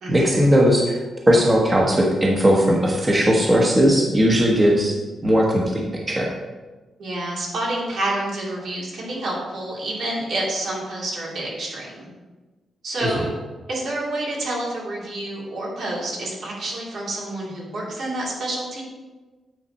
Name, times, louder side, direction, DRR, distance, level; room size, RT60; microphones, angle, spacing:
voice 1, 0.1-1.0 1.3-4.9 5.2-5.8 6.1-6.3 13.0-13.2, equal, 20° right, -2 dB, 1.0 m, -18 dB
voice 2, 7.0-12.1 12.8-13.3 13.7-18.8, right 1 dB, 75° right, -5 dB, 2.5 m, -28 dB
9.1 x 4.2 x 4.2 m, 1.3 s
cardioid pair, 120°, 0 cm